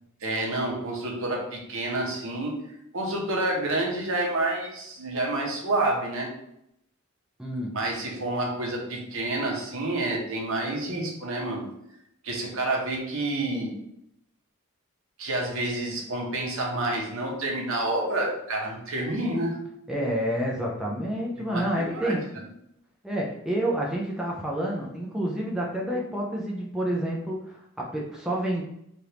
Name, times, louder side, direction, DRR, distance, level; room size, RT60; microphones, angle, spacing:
voice 1, 0.2-2.5 2.9-6.3 7.7-11.7 12.2-13.7 15.2-19.6 21.4-22.1, right 2 dB, 65° right, 0 dB, 0.8 m, -29 dB
voice 2, 7.4-7.8 19.9-22.3 23.0-28.6, right 1 dB, 5° right, -3 dB, 0.4 m, -29 dB
3.3 x 2.5 x 2.9 m, 0.76 s
head